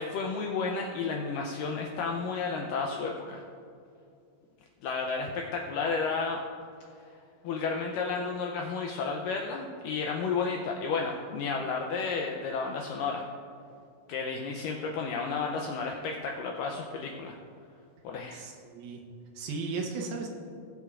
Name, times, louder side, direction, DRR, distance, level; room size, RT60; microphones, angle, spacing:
voice 1, 0.0-3.4 4.8-6.4 7.4-13.2 14.1-17.4 18.0-18.4, left 4 dB, 85° left, 1 dB, 1.9 m, -32 dB
voice 2, 18.3-19.0 19.3-20.3, right 4 dB, 80° right, 2 dB, 2.6 m, -35 dB
18.5 x 7.3 x 2.5 m, 2.4 s
omnidirectional pair, 4.5 m